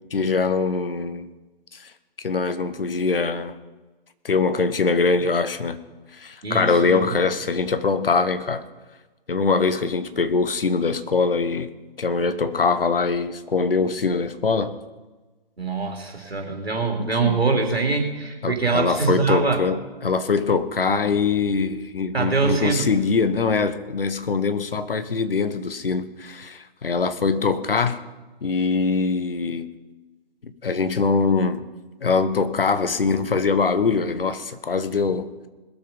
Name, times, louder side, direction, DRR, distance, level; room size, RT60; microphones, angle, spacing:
voice 1, 0.1-1.3 1.7-1.9 2.2-3.6 4.2-5.8 6.1-8.7 9.3-11.7 12.0-14.8 17.0-17.4 18.4-28.0 28.4-29.7 30.4-31.7 32.0-35.3, left 4 dB, 70° left, 1.2 m, -23 dB
voice 2, 6.4-7.0 15.6-19.6 22.1-22.9, right 4 dB, 85° right, 3.2 m, -23 dB
21.5 x 7.4 x 5.3 m
figure-of-eight pair, 135°, 30 cm